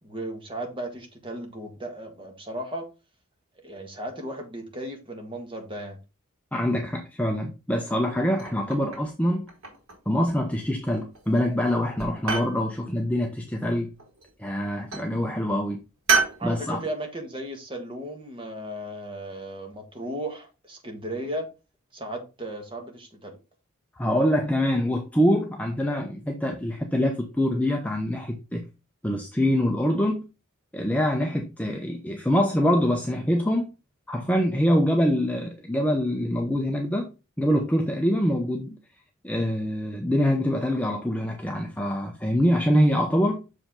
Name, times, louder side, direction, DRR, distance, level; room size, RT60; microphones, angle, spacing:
voice 1, 0.0-2.9 3.6-6.0 16.4-21.5 21.9-23.4, right 1 dB, 25° right, 1.6 m, -35 dB
voice 2, 6.5-9.4 10.1-13.9 14.4-15.8 16.4-16.8 24.0-28.6 29.0-30.2 30.7-33.7 34.1-37.1 37.4-38.8 39.2-43.4, equal, 5° left, 0.6 m, -24 dB
Ceramic and Glassware Set Down, 8.4-9.1 9.5-10.1 10.9-11.4 11.7-12.6 14.0-14.5 14.9-15.1 16.1-16.4, right 5 dB, 70° right, 2.4 m, -28 dB
6.5 x 5.0 x 3.7 m
head